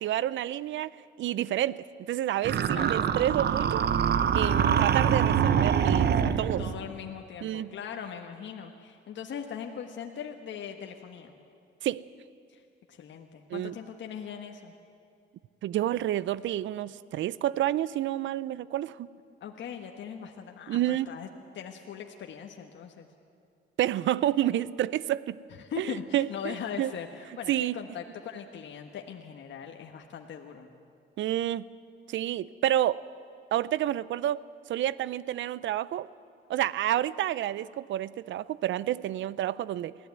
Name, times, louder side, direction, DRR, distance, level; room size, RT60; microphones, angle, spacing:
voice 1, 0.0-3.9 4.3-6.6 7.4-7.7 11.8-12.0 13.5-13.7 15.6-19.1 20.7-21.1 23.8-25.4 25.8-26.3 26.8-26.9 27.5-27.7 31.2-31.6 32.1-33.0 33.5-34.4 34.7-36.1 36.5-40.0, right 13 dB, 70° right, 19 dB, 0.6 m, -29 dB
sound 1, 2.4-6.8, right 8 dB, 55° right, 1.0 m, -24 dB
voice 2, 6.6-11.3 12.5-12.6 12.9-14.7 19.4-21.3 21.5-23.1 25.5-30.7, left 8 dB, 65° left, 3 dB, 1.4 m, -40 dB
22.5 x 15.0 x 9.5 m, 2.3 s
cardioid pair, 90°, 20 cm